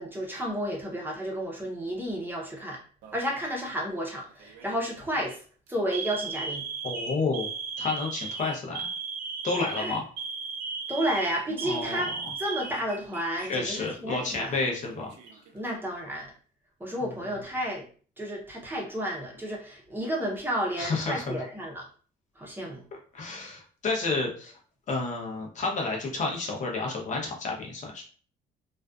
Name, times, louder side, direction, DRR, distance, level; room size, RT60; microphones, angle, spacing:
voice 1, 0.0-2.8 3.1-5.4 5.7-6.7 9.7-10.0 10.9-14.6 15.5-16.3 16.8-17.8 18.2-21.9 22.4-22.8, equal, 10° right, -2 dB, 0.7 m, -32 dB
Alarm, 3.0-3.5 4.4-4.7 5.2-5.3 5.9-13.5 13.8-13.9 14.8-15.5, right 5 dB, 80° right, 0.5 m, -36 dB
voice 2, 6.8-7.5 7.8-8.9 9.4-10.1 11.6-12.1 13.5-15.4 20.8-21.4 23.1-24.6 24.9-28.0, left 3 dB, 45° left, 0 dB, 0.7 m, -30 dB
2.5 x 2.3 x 2.3 m, 0.42 s
cardioid pair, 110°, 17 cm